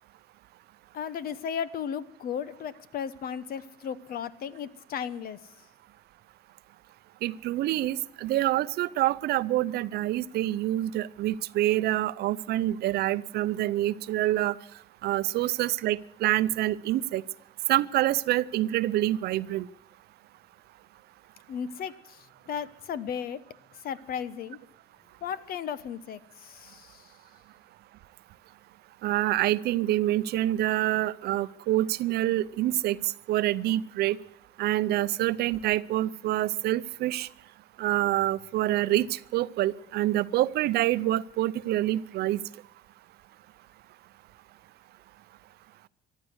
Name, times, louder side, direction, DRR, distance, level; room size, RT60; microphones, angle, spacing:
voice 1, 0.9-5.4 21.5-21.9 22.5-23.4 23.8-24.6 25.2-27.0, left 8 dB, 60° left, 16 dB, 1.1 m, -35 dB
voice 2, 7.2-14.6 15.0-17.2 17.7-19.7 29.0-34.2 34.6-37.3 37.8-42.4, right 14 dB, 75° right, 17 dB, 0.6 m, -26 dB
14.5 x 12.0 x 8.0 m, 0.77 s
cardioid pair, 110°, 17 cm